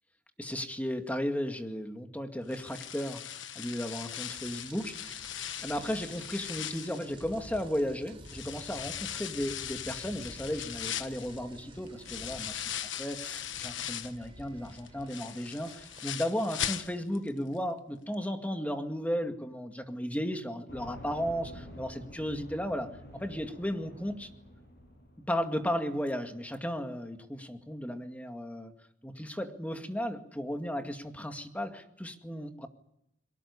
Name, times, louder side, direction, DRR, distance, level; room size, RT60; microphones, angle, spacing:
voice 1, 0.4-5.3 5.6-12.7 13.0-24.3 25.3-28.7 29.0-32.7, equal, 10° left, 5 dB, 2.1 m, -35 dB
sound 1, 2.5-7.8 8.2-14.2 14.6-17.3 17.6-17.7 18.1-18.2, left 10 dB, 85° left, 1.3 m, -39 dB
Rain, 4.2-16.0, right 1 dB, 30° right, 6.5 m, -51 dB
sound 2, 20.7-25.7, equal, 60° left, 7.6 m, -48 dB
23.0 x 19.5 x 9.8 m, 0.81 s
head